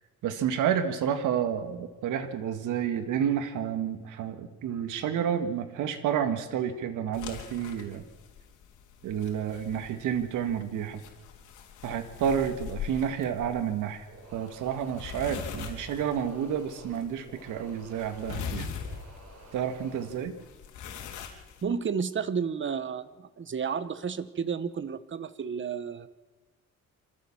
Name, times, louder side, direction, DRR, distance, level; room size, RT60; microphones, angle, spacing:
voice 1, 0.2-8.0 9.0-11.0 11.8-14.1 14.3-18.7 19.5-20.3, right 8 dB, 85° right, 8 dB, 1.8 m, -30 dB
sound 1, 7.1-21.6, left 7 dB, 85° left, 3.4 m, -42 dB
sound 2, 14.1-20.2, right 3 dB, 60° right, 6.6 m, -52 dB
voice 2, 21.6-26.1, right 6 dB, 40° right, 14 dB, 1.3 m, -32 dB
26.0 x 13.5 x 7.2 m, 1.3 s
cardioid pair, 90°, 30 cm